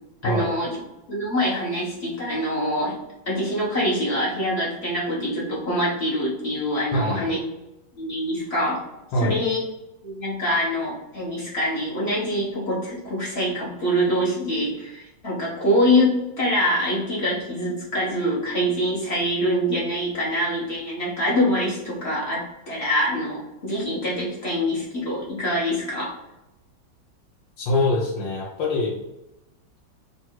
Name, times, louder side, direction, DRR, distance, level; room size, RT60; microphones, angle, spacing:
voice 1, 0.2-0.8 1.1-3.0 3.3-7.4 8.0-8.8 9.2-9.6 10.0-26.1, equal, 40° left, -6 dB, 1.1 m, -24 dB
voice 2, 6.9-7.3 9.1-9.4 27.6-29.0, left 2 dB, 75° left, -4 dB, 1.4 m, -24 dB
3.3 x 2.7 x 4.4 m, 0.94 s
omnidirectional pair, 2.1 m